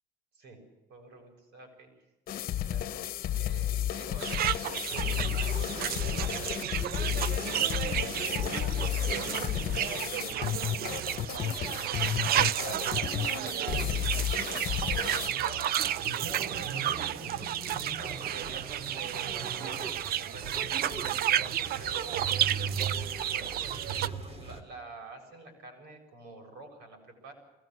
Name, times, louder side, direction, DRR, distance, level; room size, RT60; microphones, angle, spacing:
voice 1, 0.9-1.9 2.5-4.6 4.9-6.6 7.0-8.5 8.7-10.0 10.3-11.3 12.2-14.0 14.5-15.7 15.9-16.9 18.0-22.5 22.9-27.3, right 2 dB, 80° right, 3 dB, 7.5 m, -49 dB
sound 1, 2.3-15.3, left 11 dB, 60° left, 1.1 m, -32 dB
sound 2, 4.2-24.1, right 11 dB, 65° right, 0.6 m, -32 dB
sound 3, 4.9-24.6, right 3 dB, 35° right, 3.5 m, -41 dB
22.0 x 18.5 x 7.9 m, 1.1 s
cardioid pair, 110°, 17 cm